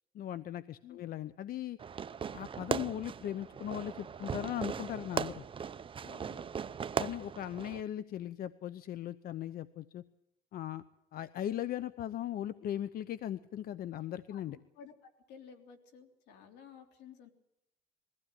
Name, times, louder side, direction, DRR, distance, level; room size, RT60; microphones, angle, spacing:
voice 1, 0.1-1.8 2.3-5.4 7.0-10.0 10.5-10.8 11.1-14.6, left 11 dB, 60° left, 15 dB, 0.8 m, -38 dB
Fireworks, 1.8-7.8, right 7 dB, 30° right, 0.7 m, -38 dB
voice 2, 6.0-6.5 12.6-12.7 14.3-17.3, left 7 dB, 85° left, 5 dB, 3.4 m, -54 dB
21.5 x 15.5 x 8.9 m, 0.86 s
cardioid pair, 110°, 17 cm